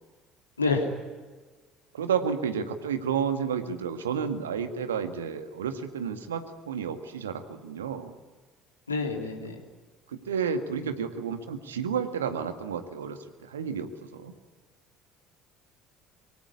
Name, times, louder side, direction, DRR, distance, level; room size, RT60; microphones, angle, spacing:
voice 1, 0.6-0.9 8.9-9.6, left 3 dB, 85° left, 2 dB, 3.2 m, -27 dB
voice 2, 1.9-8.1 10.1-14.3, right 7 dB, 75° right, 8 dB, 1.9 m, -31 dB
24.5 x 24.0 x 9.8 m, 1.4 s
figure-of-eight pair, 55°, 0 cm